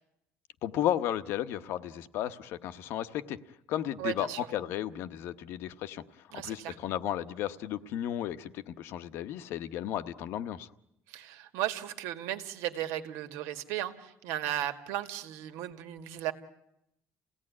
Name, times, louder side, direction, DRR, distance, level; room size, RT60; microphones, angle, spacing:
voice 1, 0.6-3.4 3.7-6.0 6.3-10.7, left 11 dB, 55° left, 13 dB, 0.9 m, -34 dB
voice 2, 4.0-4.5 6.3-6.8 11.1-16.3, right 13 dB, 80° right, 9 dB, 2.0 m, -35 dB
29.5 x 17.0 x 9.7 m, 0.83 s
cardioid pair, 175°, 5 cm